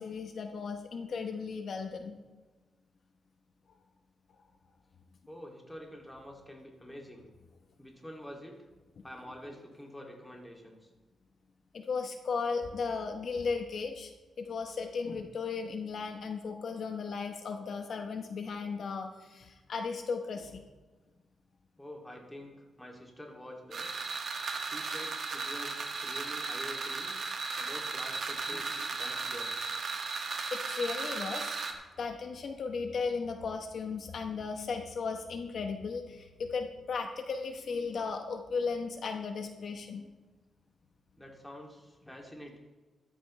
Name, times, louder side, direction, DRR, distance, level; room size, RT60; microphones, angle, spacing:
voice 1, 0.0-2.2 11.7-14.1 14.4-20.6 30.5-31.6 32.0-40.1, left 5 dB, 60° left, 5 dB, 0.9 m, -36 dB
voice 2, 5.3-7.3 7.8-8.6 9.0-10.9 21.8-23.9 24.6-27.2 27.6-29.6 41.2-42.6, equal, 5° left, 0 dB, 2.5 m, -47 dB
sound 1, 23.7-31.7, right 4 dB, 60° right, 1.8 m, -36 dB
13.5 x 13.5 x 3.2 m, 1.2 s
cardioid pair, 110°, 0 cm